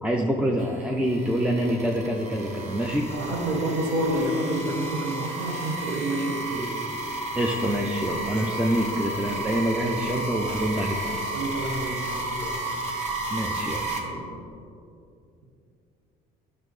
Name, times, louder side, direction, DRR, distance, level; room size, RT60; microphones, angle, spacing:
voice 1, 0.0-3.1 7.3-11.2 13.3-13.8, equal, 5° right, 0 dB, 0.5 m, -26 dB
sound 1, 0.6-14.0, right 2 dB, 40° right, 1.4 m, -33 dB
voice 2, 3.1-6.8 8.3-8.4 9.3-9.4 11.3-12.6 14.0-14.5, right 1 dB, 85° right, 1 dB, 1.3 m, -29 dB
10.5 x 6.1 x 3.2 m, 2.6 s
cardioid pair, 110°, 17 cm